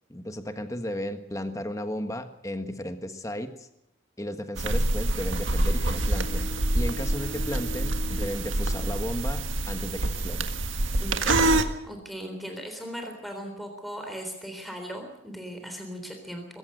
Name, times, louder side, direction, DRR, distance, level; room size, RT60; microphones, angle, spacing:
voice 1, 0.1-3.7 4.2-10.5, equal, 15° left, 8 dB, 1.5 m, -34 dB
sound 1, 4.6-11.6, right 2 dB, 90° right, 1.8 m, -26 dB
Bowed string instrument, 5.4-9.7, left 3 dB, 55° left, 1.0 m, -43 dB
voice 2, 11.0-16.5, equal, ahead, 4 dB, 3.8 m, -38 dB
21.5 x 17.0 x 8.0 m, 0.82 s
head